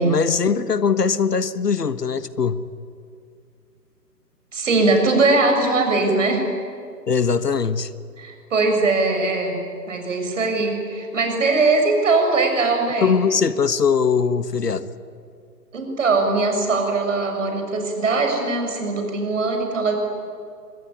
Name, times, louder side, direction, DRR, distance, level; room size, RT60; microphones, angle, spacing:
voice 1, 0.0-2.7 7.1-7.9 13.0-14.9, left 6 dB, 70° left, 14 dB, 1.5 m, -21 dB
voice 2, 4.5-6.4 8.2-9.6 9.9-13.1 15.7-20.0, right 3 dB, 50° right, 3 dB, 7.0 m, -20 dB
25.0 x 23.5 x 9.9 m, 2.4 s
figure-of-eight pair, 145°, 49 cm